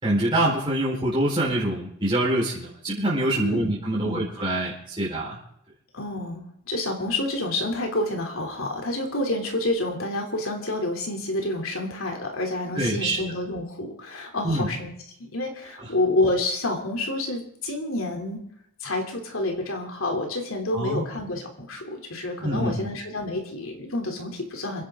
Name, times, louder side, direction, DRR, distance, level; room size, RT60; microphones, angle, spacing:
voice 1, 0.0-5.4 12.7-13.1 14.4-14.7 20.7-21.0 22.4-22.9, right 1 dB, 20° right, -6 dB, 4.5 m, -25 dB
voice 2, 3.3-3.7 4.0-4.2 5.9-14.9 15.2-18.4 18.8-24.9, left 2 dB, 65° left, 2 dB, 3.3 m, -28 dB
29.5 x 11.0 x 3.8 m, 0.75 s
head